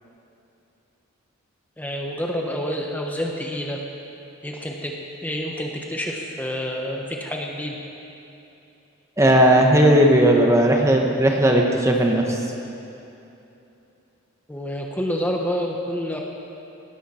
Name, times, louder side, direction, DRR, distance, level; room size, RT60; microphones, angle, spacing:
voice 1, 1.8-3.8 4.4-4.9 5.2-7.7 14.5-16.2, equal, 10° left, 0 dB, 1.0 m, -28 dB
voice 2, 9.2-12.4, right 1 dB, 15° right, 1 dB, 1.1 m, -16 dB
18.5 x 16.0 x 4.4 m, 2.8 s
head